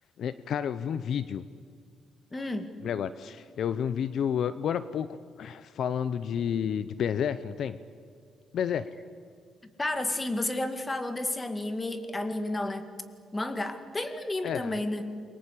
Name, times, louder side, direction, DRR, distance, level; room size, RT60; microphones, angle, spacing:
voice 1, 0.2-1.5 2.8-7.8 8.5-8.9 14.4-14.8, left 8 dB, 55° left, 14 dB, 0.7 m, -30 dB
voice 2, 2.3-2.7 9.8-12.8 13.3-15.0, left 2 dB, 15° left, 9 dB, 2.0 m, -31 dB
29.0 x 23.0 x 8.4 m, 2.1 s
cardioid pair, 145°, 0 cm